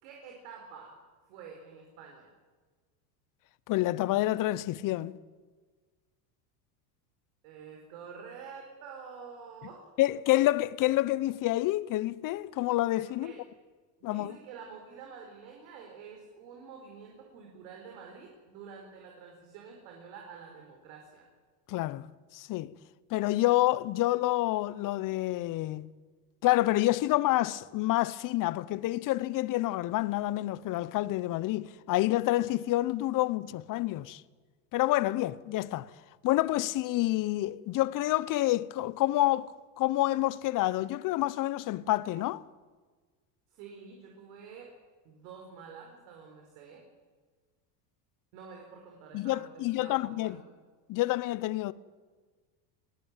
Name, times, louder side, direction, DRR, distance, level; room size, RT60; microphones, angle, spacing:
voice 1, 0.0-1.0 1.3-2.3 7.4-9.9 13.0-13.4 14.0-21.2 43.5-44.7 45.0-46.9 48.3-50.5, right 6 dB, 70° right, 4.7 m, -48 dB
voice 2, 3.7-5.1 10.0-13.3 14.0-14.4 21.7-22.1 22.3-22.7 23.1-25.9 26.4-34.2 34.7-35.9 36.2-42.4 49.1-50.4 50.9-51.7, left 16 dB, 40° left, 0.9 m, -28 dB
21.5 x 16.5 x 9.0 m
supercardioid pair, 125°, 47 cm